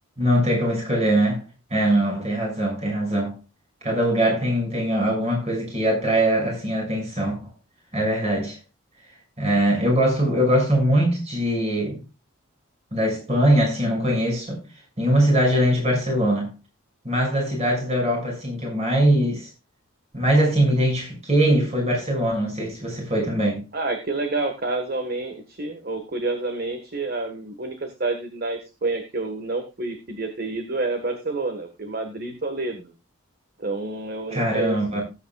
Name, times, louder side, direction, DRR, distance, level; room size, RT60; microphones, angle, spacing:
voice 1, 0.2-1.4 1.7-3.3 3.8-7.4 7.9-8.6 9.4-12.0 12.9-14.6 15.0-16.5 17.0-19.5 20.1-23.6 34.3-35.0, right 1 dB, 30° right, 6.1 m, -21 dB
voice 2, 23.7-32.9 33.6-35.0, right 3 dB, 45° right, 1.5 m, -29 dB
18.5 x 8.5 x 2.4 m
head